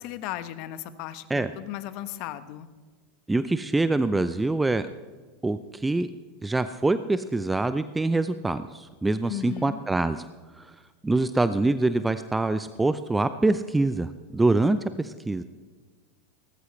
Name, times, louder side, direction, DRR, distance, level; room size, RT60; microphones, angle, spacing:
voice 1, 0.0-2.7 9.3-9.8, left 13 dB, 55° left, 13 dB, 1.0 m, -36 dB
voice 2, 3.3-4.9 5.4-6.1 6.4-10.2 10.6-10.7 11.0-15.4, right 2 dB, 10° right, 12 dB, 0.6 m, -25 dB
19.0 x 14.0 x 3.2 m, 1.4 s
hypercardioid pair, 90°, 0 cm